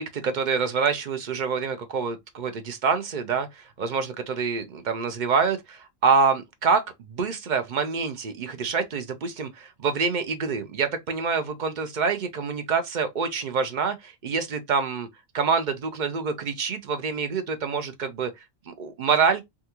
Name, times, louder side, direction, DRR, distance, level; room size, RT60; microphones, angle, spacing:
voice 1, 0.0-15.1 15.3-18.3 18.7-19.4, right 5 dB, 60° right, 0.5 m, -26 dB
3.5 x 2.3 x 2.8 m
omnidirectional pair, 1.3 m